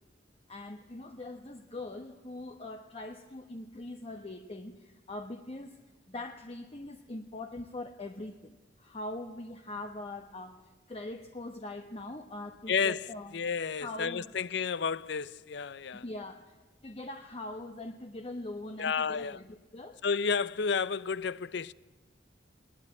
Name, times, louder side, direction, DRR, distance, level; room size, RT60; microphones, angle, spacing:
voice 1, 0.5-5.8 6.1-10.6 10.9-13.3 13.8-14.3 15.9-16.6 16.8-20.0, left 2 dB, 35° left, 1.0 m, -42 dB
voice 2, 12.7-13.1 13.3-16.0 18.8-19.4 20.0-21.7, left 5 dB, 70° left, 0.6 m, -31 dB
20.5 x 19.5 x 9.0 m
head